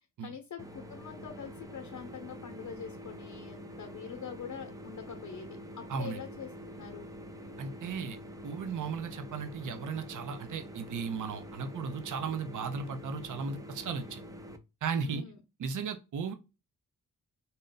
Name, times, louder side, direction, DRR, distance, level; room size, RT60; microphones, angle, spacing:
voice 1, 0.2-5.5 5.8-6.5 6.8-7.1 15.0-15.4, left 7 dB, 60° left, 0.8 m, -44 dB
sound 1, 0.6-14.6, equal, 10° right, 0.5 m, -46 dB
voice 2, 5.9-6.2 7.6-8.2 8.4-14.2 14.8-15.2 15.6-16.3, right 5 dB, 65° right, 0.6 m, -36 dB
3.9 x 2.2 x 3.9 m
wide cardioid pair, 110°, 34 cm